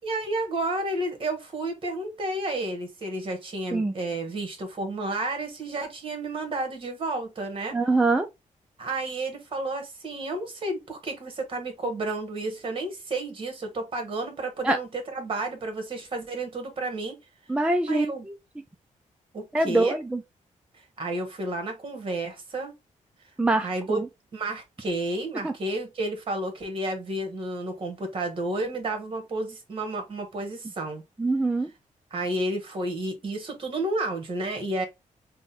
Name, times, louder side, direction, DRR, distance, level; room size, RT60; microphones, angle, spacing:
voice 1, 0.0-7.8 8.8-17.2 17.9-18.2 19.3-20.0 21.0-22.7 23.6-24.0 24.3-31.0 32.1-34.8, right 2 dB, 40° right, 1.4 m, -31 dB
voice 2, 7.7-8.3 14.6-14.8 17.5-18.1 19.5-20.2 23.4-24.1 25.4-25.5 31.2-31.7, right 2 dB, 5° right, 0.4 m, -23 dB
3.7 x 2.2 x 4.0 m
cardioid pair, 130°, 14 cm